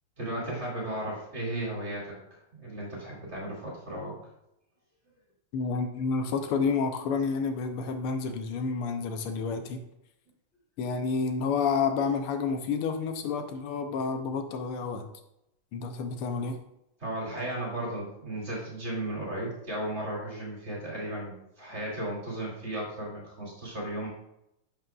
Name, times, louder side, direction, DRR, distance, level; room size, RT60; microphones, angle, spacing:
voice 1, 0.2-2.1 2.6-4.2 17.0-24.1, right 1 dB, 30° right, -4 dB, 2.5 m, -35 dB
voice 2, 5.5-9.8 10.8-15.0 15.7-16.6, left 5 dB, 85° left, 7 dB, 1.7 m, -29 dB
11.5 x 5.3 x 2.3 m, 0.83 s
omnidirectional pair, 2.4 m